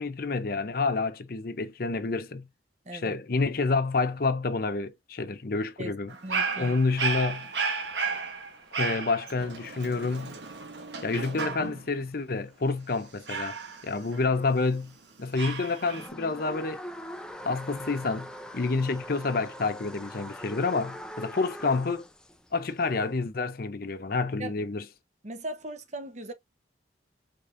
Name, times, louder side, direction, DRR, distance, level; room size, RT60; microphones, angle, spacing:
voice 1, 0.0-2.5 2.9-6.1 6.6-7.5 8.8-10.3 11.0-13.6 13.8-14.9 15.2-16.8 17.4-18.3 18.5-22.1 22.5-24.8, left 3 dB, 55° left, 0.7 m, -28 dB
Dog, 6.1-12.0 13.3-14.8 15.4-16.1, right 5 dB, 75° right, 1.2 m, -33 dB
voice 2, 6.2-6.8 24.4-24.5 25.2-26.3, right 1 dB, 40° right, 1.0 m, -38 dB
sound 1, 7.8-14.9 15.3-23.2, equal, 5° left, 0.6 m, -44 dB
5.1 x 3.7 x 2.6 m
head